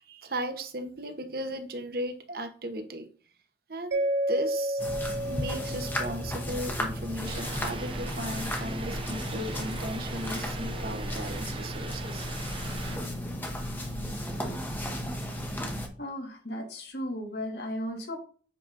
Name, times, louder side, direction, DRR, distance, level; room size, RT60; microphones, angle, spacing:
voice 1, 0.0-3.1 3.7-4.8 5.3-12.3, right 1 dB, 55° right, 7 dB, 0.9 m, -36 dB
Mallet percussion, 3.9-6.9, right 1 dB, 80° right, 0.6 m, -31 dB
sound 1, 4.8-15.9, equal, 10° left, 0.9 m, -34 dB
sound 2, 7.2-13.0, right 2 dB, 30° right, 0.6 m, -39 dB
voice 2, 16.0-18.2, left 1 dB, 70° left, 2 dB, 1.7 m, -35 dB
7.6 x 5.0 x 2.6 m, 0.40 s
head